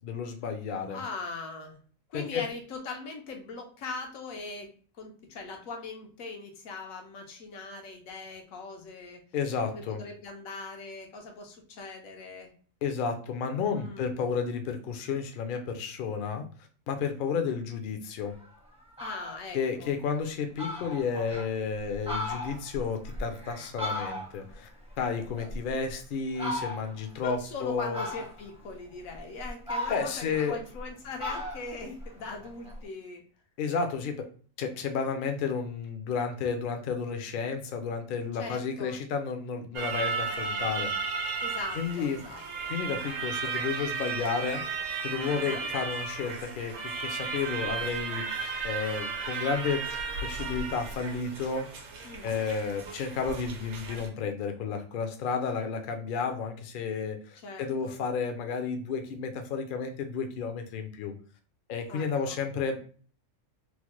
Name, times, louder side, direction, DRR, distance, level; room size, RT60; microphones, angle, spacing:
voice 1, 0.0-1.0 2.1-2.4 9.3-10.0 12.8-16.4 16.9-18.4 19.5-24.7 25.0-28.0 29.9-30.6 33.6-34.3 34.6-40.9 41.7-42.2 42.7-44.6 45.0-49.8 50.2-51.7 52.2-61.1 61.7-62.8, left 5 dB, 60° left, 5 dB, 0.5 m, -32 dB
voice 2, 0.9-1.8 2.1-4.7 5.0-9.2 9.7-12.5 13.7-14.1 19.0-19.9 27.2-33.2 38.4-39.0 41.4-42.7 45.3-45.7 52.0-52.4 57.4-58.0 61.9-62.4, left 3 dB, 90° left, 3 dB, 1.1 m, -41 dB
Fowl, 18.3-18.4 18.8-19.4 19.9-20.0 20.3-20.4 20.6-21.5 21.9-24.5 24.9-25.9 26.3-27.0 27.9-28.6 29.1-30.9 31.2-32.8, left 1 dB, 10° right, 0.4 m, -36 dB
sound 1, 39.7-54.1, right 5 dB, 65° right, 0.9 m, -34 dB
3.1 x 2.1 x 3.0 m, 0.42 s
omnidirectional pair, 1.4 m